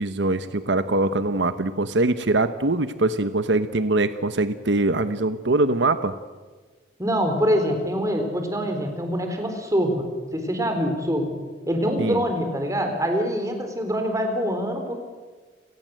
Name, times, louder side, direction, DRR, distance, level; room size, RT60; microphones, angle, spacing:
voice 1, 0.0-6.1 12.0-12.2, right 2 dB, 85° right, 12 dB, 1.1 m, -23 dB
voice 2, 7.0-11.3 11.7-14.9, equal, 20° right, 5 dB, 4.1 m, -24 dB
29.5 x 18.5 x 7.8 m, 1.4 s
head